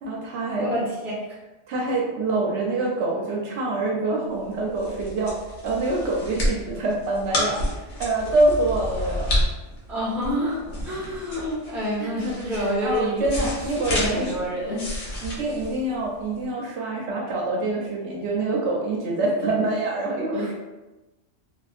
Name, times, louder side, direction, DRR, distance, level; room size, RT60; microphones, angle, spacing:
voice 1, 0.0-0.7 1.7-5.3 5.6-7.6 8.0-9.3 12.0-14.3 15.2-20.5, right 2 dB, 70° right, -2 dB, 0.8 m, -25 dB
voice 2, 0.6-1.4 9.9-13.5 13.7-14.9 15.4-15.6 20.3-20.5, equal, ahead, -8 dB, 0.6 m, -28 dB
sound 1, 4.4-16.4, left 1 dB, 70° left, 1.1 m, -30 dB
2.6 x 2.4 x 2.4 m, 1.1 s
omnidirectional pair, 1.3 m